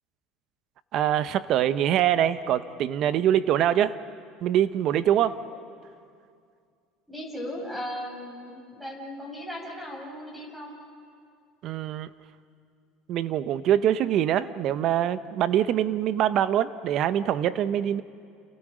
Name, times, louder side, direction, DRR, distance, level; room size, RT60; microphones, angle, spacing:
voice 1, 0.9-4.0 4.4-5.4 11.6-12.1 13.1-18.0, right 11 dB, 55° right, 13 dB, 1.0 m, -24 dB
voice 2, 7.1-10.8, equal, 5° right, 0 dB, 6.8 m, -37 dB
30.0 x 29.0 x 5.1 m, 2.3 s
supercardioid pair, 120°, 0 cm